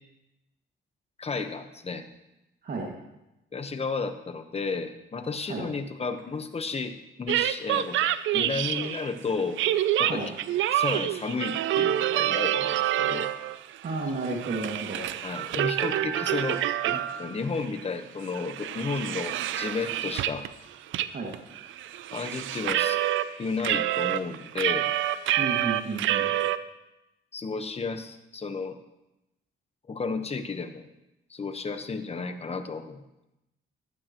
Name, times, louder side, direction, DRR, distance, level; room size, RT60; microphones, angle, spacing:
voice 1, 1.2-2.1 3.5-9.6 10.0-10.2 10.7-13.3 15.2-20.5 22.1-23.0 23.4-24.9 27.3-28.8 29.9-30.9 31.3-33.0, left 4 dB, 30° left, 8 dB, 1.1 m, -33 dB
sound 1, 7.3-9.1 9.6-13.6 13.9-17.4 17.7-17.8 18.2-20.5 20.9-21.1 21.3-23.3 23.6-26.6, right 12 dB, 75° right, 0.5 m, -27 dB
voice 2, 13.8-15.0 21.1-21.3 25.4-26.3, right 3 dB, 50° right, -1 dB, 2.3 m, -32 dB
15.5 x 11.5 x 3.1 m, 0.93 s
cardioid pair, 90°, 20 cm